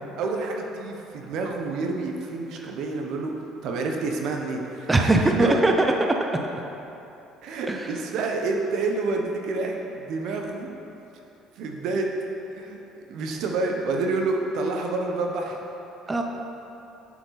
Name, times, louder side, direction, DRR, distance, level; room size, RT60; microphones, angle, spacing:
voice 1, 0.2-3.3 3.6-5.6 7.4-10.7 11.6-12.1 12.6-12.8 13.1-15.6, right 3 dB, 65° right, 2 dB, 1.0 m, -28 dB
voice 2, 4.9-6.1 7.7-7.8 16.1-16.2, right 2 dB, 20° right, 3 dB, 0.8 m, -20 dB
7.6 x 7.6 x 4.1 m, 2.9 s
hypercardioid pair, 60°, 0 cm